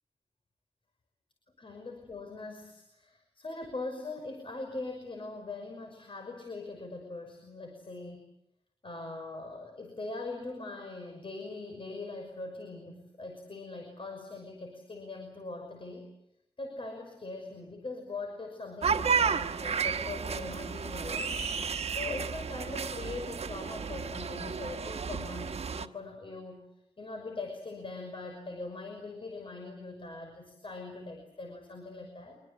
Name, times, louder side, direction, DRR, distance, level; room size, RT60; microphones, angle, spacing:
voice 1, 1.6-8.3 8.8-16.1 16.6-21.4 21.9-26.6 27.0-32.4, left 3 dB, 55° left, 4 dB, 6.0 m, -41 dB
sound 1, 18.8-25.9, right 6 dB, 80° right, 1.2 m, -32 dB
26.0 x 23.5 x 8.4 m, 0.80 s
wide cardioid pair, 75°, 11 cm